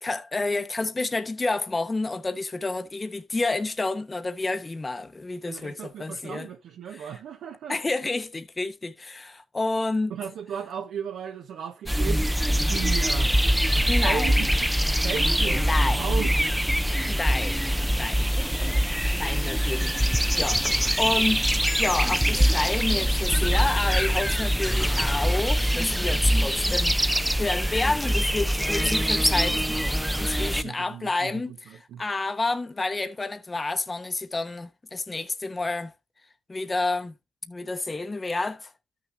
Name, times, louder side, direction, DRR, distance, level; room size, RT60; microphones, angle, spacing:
voice 1, 0.0-6.5 6.9-7.1 7.7-10.1 13.9-14.5 15.5-16.2 17.1-18.3 19.1-35.9 36.5-37.2 37.5-38.7, left 3 dB, 25° left, 0.9 m, -29 dB
voice 2, 5.4-7.8 10.1-12.3 12.7-13.3 13.7-14.5 15.0-16.3 30.1-32.0, right 8 dB, 75° right, 1.0 m, -35 dB
sound 1, 11.9-30.6, equal, 5° right, 0.6 m, -23 dB
13.0 x 6.3 x 2.7 m
cardioid pair, 90°, 0 cm